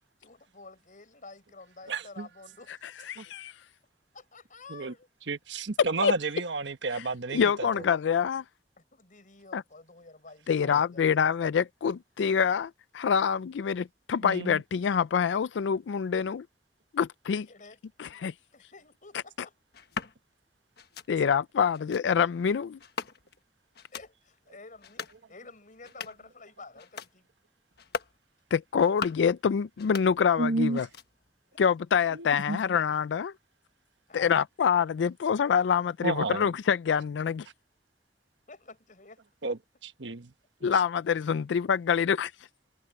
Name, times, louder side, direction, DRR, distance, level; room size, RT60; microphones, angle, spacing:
voice 1, 0.2-2.7 4.1-5.1 7.4-7.9 8.8-11.3 17.5-17.8 18.5-19.5 21.7-21.8 23.9-27.3 31.5-31.6 34.1-34.4 38.5-39.2, left 3 dB, 50° left, 7.0 m, -50 dB
voice 2, 1.9-2.3 3.2-3.3 4.7-4.9 5.3-7.8 10.7-10.8 14.2-14.6 30.4-30.8 32.1-32.6 36.0-36.5 39.4-40.3 40.6-40.7, right 3 dB, 90° right, 1.2 m, -32 dB
voice 3, 3.1-3.6 5.8-6.1 6.9-7.0 7.3-8.4 9.5-9.6 10.5-16.5 16.9-17.5 18.0-18.3 21.1-22.8 28.5-30.9 31.6-33.3 34.1-37.5 40.6-42.3, left 7 dB, 90° left, 0.4 m, -26 dB
sound 1, 19.7-20.1 20.8-21.1 21.7-22.0 22.8-23.4 23.7-24.1 24.7-25.2 25.7-26.3 26.8-27.1 27.7-28.2 28.7-29.3 29.7-30.5 30.7-31.3, left 5 dB, 65° left, 1.3 m, -40 dB
head